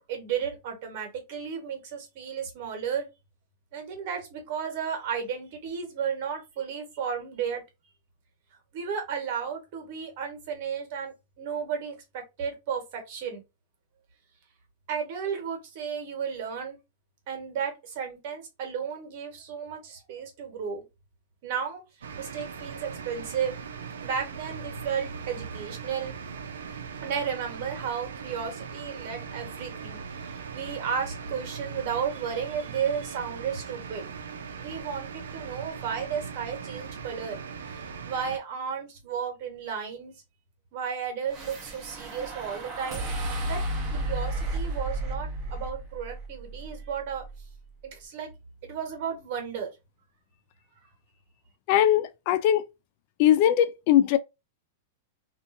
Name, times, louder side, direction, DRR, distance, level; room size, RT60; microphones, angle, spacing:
voice 1, 0.0-3.1 3.7-7.6 8.7-13.4 14.9-16.8 17.3-20.8 21.4-21.8 22.2-23.6 24.0-26.1 27.0-34.0 34.6-40.1 40.7-43.1 43.5-43.6 43.9-47.2 47.8-48.3 48.6-49.7, right 7 dB, 55° right, 1.2 m, -33 dB
sound 1, 22.0-38.4, right 6 dB, 85° right, 0.5 m, -40 dB
sound 2, 41.3-47.7, right 1 dB, 30° right, 0.8 m, -33 dB
voice 2, 51.7-52.6 53.2-54.2, left 11 dB, 50° left, 0.3 m, -20 dB
2.6 x 2.4 x 2.5 m
hypercardioid pair, 130°, 0 cm